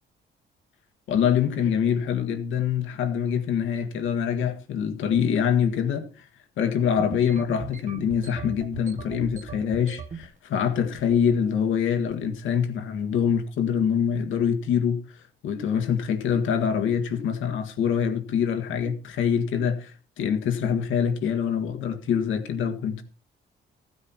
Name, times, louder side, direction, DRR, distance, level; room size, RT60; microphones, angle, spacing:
voice 1, 1.1-6.3 6.6-23.0, left 7 dB, 85° left, 1.7 m, -25 dB
sound 1, 7.0-10.3 10.7-11.2 11.5-11.8 12.1-12.4 13.0-13.2, right 6 dB, 40° right, 1.1 m, -40 dB
15.0 x 9.6 x 4.3 m
cardioid pair, 90°, 20 cm